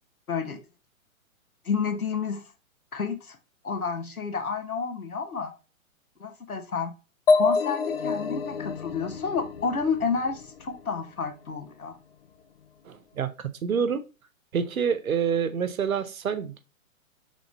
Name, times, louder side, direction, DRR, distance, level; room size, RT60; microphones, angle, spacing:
voice 1, 0.3-0.6 1.6-2.4 2.9-3.4 3.6-5.5 6.2-6.9 7.3-12.0, left 5 dB, 85° left, 1.2 m, -30 dB
sound 1, 7.3-10.9, left 4 dB, 45° left, 0.4 m, -27 dB
voice 2, 12.9-13.3 13.6-14.0 14.5-16.6, right 7 dB, 75° right, 0.9 m, -27 dB
3.9 x 3.5 x 3.8 m
figure-of-eight pair, 120°, 42 cm